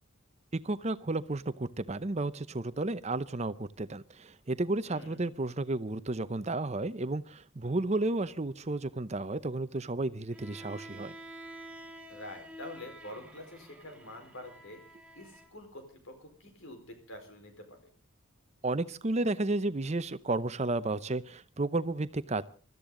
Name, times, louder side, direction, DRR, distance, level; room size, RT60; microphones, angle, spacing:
voice 1, 0.6-11.1 18.6-22.5, right 2 dB, 30° right, 0.7 m, -32 dB
voice 2, 4.9-5.3 12.1-14.8 15.2-17.9, left 1 dB, 70° left, 4.5 m, -47 dB
Bowed string instrument, 10.3-15.5, right 1 dB, 5° right, 1.6 m, -49 dB
23.5 x 13.5 x 3.8 m
head